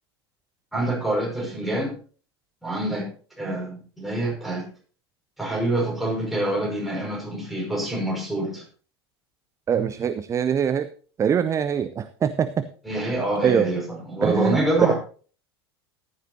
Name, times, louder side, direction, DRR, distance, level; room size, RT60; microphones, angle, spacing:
voice 1, 0.7-1.9 2.6-3.1 3.4-4.6 5.4-8.6 12.8-13.8 14.1-14.9, right 1 dB, ahead, -2 dB, 5.5 m, -26 dB
voice 2, 9.7-10.9 11.2-12.7 13.4-13.7 14.2-14.6, right 8 dB, 20° right, 13 dB, 0.5 m, -23 dB
14.5 x 11.0 x 2.8 m, 0.41 s
figure-of-eight pair, 80°, 14 cm